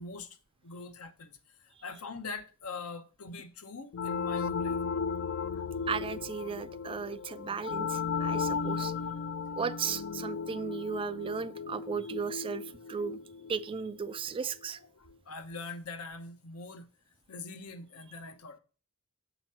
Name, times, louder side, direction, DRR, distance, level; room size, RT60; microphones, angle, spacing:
voice 1, 0.0-4.8 5.5-5.7 8.2-8.3 12.9-13.0 14.4-16.9 17.3-18.6, left 3 dB, 80° left, 0.8 m, -44 dB
sound 1, 3.9-14.4, left 5 dB, 60° left, 0.4 m, -35 dB
voice 2, 5.9-8.9 9.5-12.6 12.9-13.2 13.5-14.8, right 6 dB, 25° right, 0.3 m, -35 dB
7.3 x 3.0 x 5.4 m
head